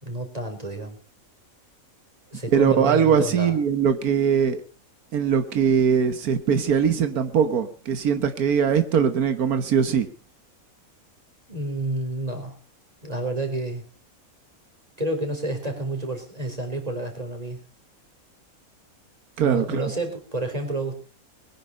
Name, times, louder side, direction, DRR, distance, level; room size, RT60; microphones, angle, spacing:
voice 1, 0.0-1.0 2.3-3.5 11.5-12.6 13.0-13.8 15.0-17.6 19.4-21.0, right 2 dB, 25° right, 4 dB, 4.2 m, -29 dB
voice 2, 2.5-4.6 5.1-10.1 19.4-19.9, right 7 dB, 85° right, 9 dB, 1.7 m, -21 dB
21.5 x 10.5 x 5.5 m, 0.39 s
omnidirectional pair, 1.5 m